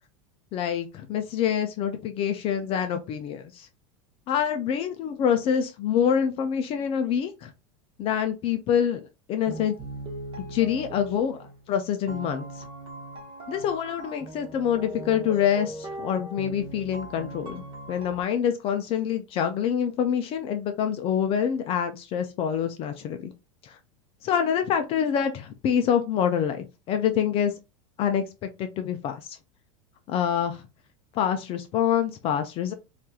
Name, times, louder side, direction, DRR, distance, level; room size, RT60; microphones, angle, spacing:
voice 1, 0.5-3.7 4.3-7.5 8.0-9.7 10.5-12.6 13.5-17.6 17.9-23.3 23.6-23.8 24.2-27.5 28.0-28.2 28.6-29.4 30.1-30.6 31.1-32.7, left 8 dB, 35° left, 0.3 m, -26 dB
sound 1, 9.5-11.7 12.0-18.2, right 1 dB, 30° right, 0.7 m, -39 dB
2.8 x 2.4 x 2.2 m
supercardioid pair, 140°, 17 cm